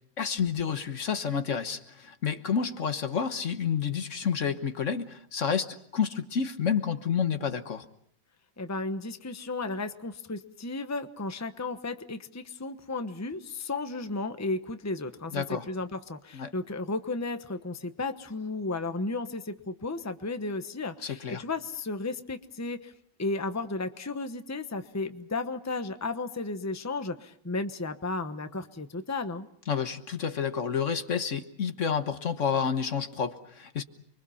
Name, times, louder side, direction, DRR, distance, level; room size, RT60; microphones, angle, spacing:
voice 1, 0.2-7.9 15.3-15.7 16.3-16.5 21.0-21.4 29.7-33.8, left 7 dB, 60° left, 9 dB, 1.5 m, -29 dB
voice 2, 8.6-22.9 23.2-29.5, left 3 dB, 15° left, 8 dB, 1.0 m, -34 dB
29.5 x 23.5 x 5.7 m, 0.66 s
omnidirectional pair, 1.5 m